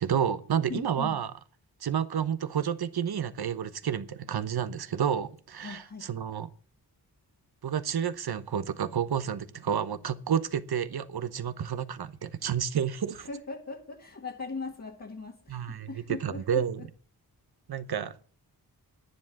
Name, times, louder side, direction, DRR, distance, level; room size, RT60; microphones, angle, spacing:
voice 1, 0.0-1.3 1.8-6.5 7.6-13.3 15.5-16.8 17.7-18.3, right 8 dB, 70° right, 1.1 m, -30 dB
voice 2, 0.7-1.2 5.6-6.1 13.3-16.9, left 4 dB, 40° left, 1.8 m, -40 dB
10.5 x 10.0 x 5.9 m
cardioid pair, 75°, 40 cm